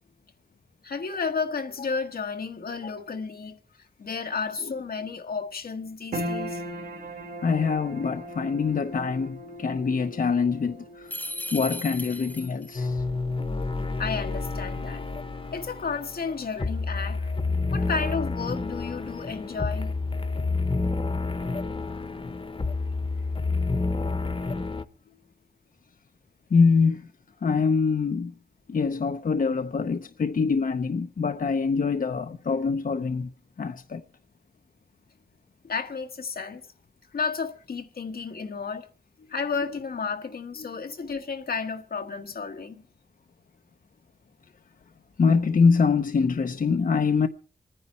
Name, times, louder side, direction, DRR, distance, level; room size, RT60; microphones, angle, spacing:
voice 1, 0.8-3.6 4.0-6.6 14.0-15.1 15.5-17.2 17.7-19.9 35.6-36.6 37.1-38.9 39.3-42.8, left 5 dB, 85° left, 1.5 m, -32 dB
sound 1, 6.1-18.5 18.8-19.7 20.2-20.3, equal, 85° right, 3.3 m, -41 dB
voice 2, 7.4-13.0 26.5-27.1 27.4-28.3 28.7-33.3 33.6-34.0 40.6-40.7 45.2-47.3, left 5 dB, 65° left, 0.7 m, -24 dB
sound 2, 11.1-12.8, left 1 dB, 10° left, 0.9 m, -36 dB
sound 3, 12.7-24.8, left 3 dB, 35° left, 1.0 m, -29 dB
27.0 x 10.0 x 4.3 m
wide cardioid pair, 65°, 15 cm